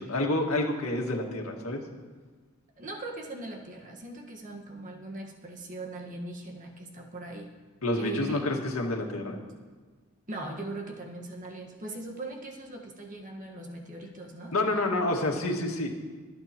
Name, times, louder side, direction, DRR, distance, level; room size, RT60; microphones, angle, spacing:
voice 1, 0.0-1.8 7.8-9.4 14.5-15.9, left 2 dB, 85° left, 1 dB, 1.9 m, -28 dB
voice 2, 2.8-7.5 7.9-8.5 10.3-14.5, right 2 dB, 35° right, 1 dB, 1.5 m, -40 dB
24.5 x 8.8 x 3.0 m, 1.4 s
head